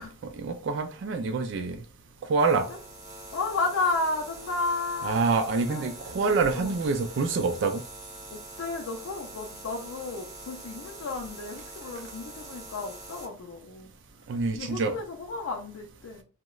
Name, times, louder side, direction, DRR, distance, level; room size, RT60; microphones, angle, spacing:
voice 1, 0.0-1.8 2.3-2.7 5.0-7.8 14.3-14.9, right 4 dB, 55° right, 0.3 m, -26 dB
sound 1, 2.4-13.3, right 2 dB, 35° right, 0.8 m, -44 dB
voice 2, 3.3-5.2 5.7-6.0 6.5-6.8 8.3-13.9 14.5-16.2, left 3 dB, 70° left, 0.4 m, -33 dB
2.9 x 2.1 x 2.3 m
head